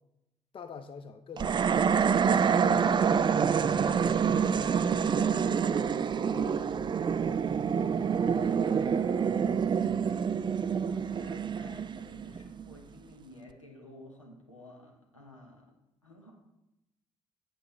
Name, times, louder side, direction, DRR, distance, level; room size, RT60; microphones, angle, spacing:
voice 1, 0.5-3.2 3.7-6.7 11.1-11.3, left 5 dB, 35° left, 8 dB, 0.6 m, -47 dB
sound 1, 1.4-12.7, right 7 dB, 30° right, 0.4 m, -27 dB
voice 2, 8.0-9.6 10.0-10.3 10.5-15.7 16.0-16.3, left 1 dB, 90° left, -1 dB, 1.1 m, -53 dB
8.0 x 7.7 x 3.1 m, 0.88 s
figure-of-eight pair, 45°, 16 cm